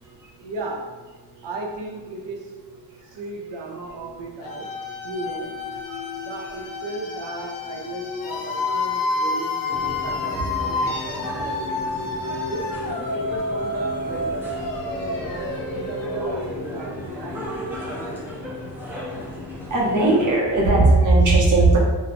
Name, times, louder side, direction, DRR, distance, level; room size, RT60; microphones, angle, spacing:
voice 1, 0.4-1.0 1.4-2.6 3.0-4.7 5.0-5.6 6.2-11.9 12.5-14.6 15.2-18.3, right 2 dB, 85° right, 0 dB, 0.7 m, -35 dB
sound 1, 4.4-17.2, left 2 dB, 55° left, 0.5 m, -29 dB
voice 2, 5.9-6.2 10.3-10.4 10.8-10.9 15.0-15.3 19.7-21.8, right 2 dB, 45° right, -4 dB, 0.8 m, -19 dB
sound 2, 9.7-20.4, left 1 dB, 5° right, 0.5 m, -35 dB
2.7 x 2.2 x 4.1 m, 1.2 s
wide cardioid pair, 170°, 43 cm